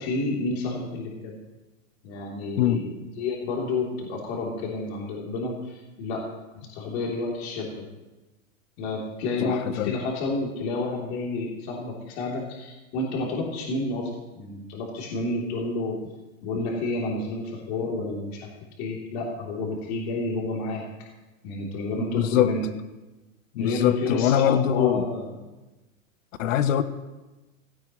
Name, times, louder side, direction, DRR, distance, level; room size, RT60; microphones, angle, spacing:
voice 1, 0.0-1.3 2.0-2.9 3.2-6.3 6.7-7.9 8.8-16.0 16.4-18.5 18.8-20.9 21.4-22.6 23.6-25.3, left 2 dB, 50° left, -3 dB, 3.4 m, -30 dB
voice 2, 9.4-9.9 16.5-16.6 22.1-22.5 23.5-25.0 26.4-26.8, left 10 dB, 70° left, 12 dB, 1.0 m, -23 dB
16.5 x 16.5 x 3.2 m, 1.1 s
supercardioid pair, 150°, 40 cm